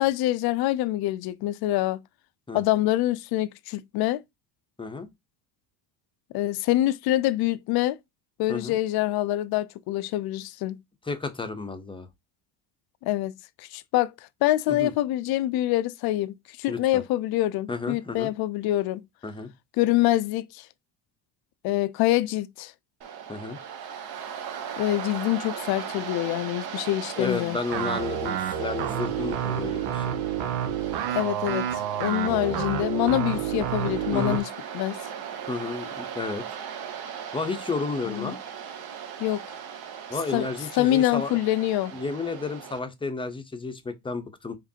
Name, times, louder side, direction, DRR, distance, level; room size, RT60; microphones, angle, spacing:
voice 1, 0.0-2.0 2.5-4.2 6.3-8.0 8.4-10.8 13.0-13.3 13.6-14.1 14.4-19.0 19.8-20.7 21.6-22.7 24.8-27.6 31.1-34.5 34.7-35.0 38.1-38.3 39.2-39.4 40.3-40.5 40.7-42.0, left 15 dB, 50° left, 0.5 m, -25 dB
voice 2, 11.0-12.1 14.7-14.9 16.7-17.0 17.7-18.3 19.2-19.5 23.3-23.6 27.2-30.2 32.3-32.5 34.1-34.4 35.5-36.5 37.3-38.4 40.1-41.4 41.9-44.6, left 4 dB, 10° left, 0.7 m, -32 dB
Waves surf, 23.0-42.8, right 8 dB, 50° right, 1.0 m, -38 dB
sound 1, 27.7-34.4, right 9 dB, 85° right, 0.8 m, -29 dB
4.9 x 2.6 x 2.8 m
supercardioid pair, 90°, 49 cm